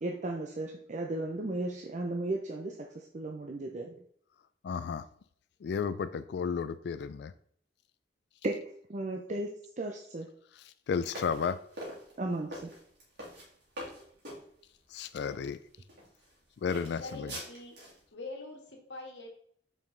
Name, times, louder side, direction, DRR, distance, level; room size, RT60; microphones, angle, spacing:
voice 1, 0.0-3.9 8.4-8.6 8.9-10.3 12.2-12.7, right 2 dB, 40° right, 1 dB, 0.6 m, -35 dB
voice 2, 4.6-5.0 5.6-7.3 10.9-11.6 14.9-15.6 16.6-17.3, left 6 dB, 65° left, 13 dB, 0.3 m, -33 dB
sound 1, 11.1-14.4 15.2-15.3 15.9-16.3 16.7-18.0, equal, 65° right, 2.6 m, -43 dB
voice 3, 17.0-17.8 18.1-19.3, left 2 dB, 80° left, 1 dB, 1.4 m, -43 dB
5.4 x 5.0 x 3.8 m, 0.63 s
head